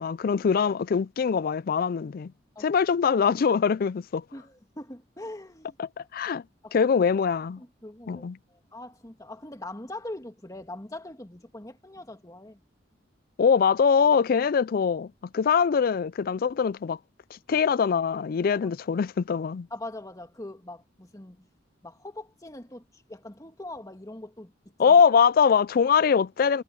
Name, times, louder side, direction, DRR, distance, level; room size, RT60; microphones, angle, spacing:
voice 1, 0.0-2.3 2.6-4.2 5.8-6.4 6.7-7.6 8.1-8.4 13.4-17.0 17.3-19.7 24.8-26.6, left 6 dB, 50° left, 0.3 m, -23 dB
voice 2, 4.3-5.8 6.6-6.9 7.6-12.6 18.5-18.7 19.7-21.5 21.8-24.5 24.8-25.0, left 1 dB, 20° left, 2.2 m, -42 dB
head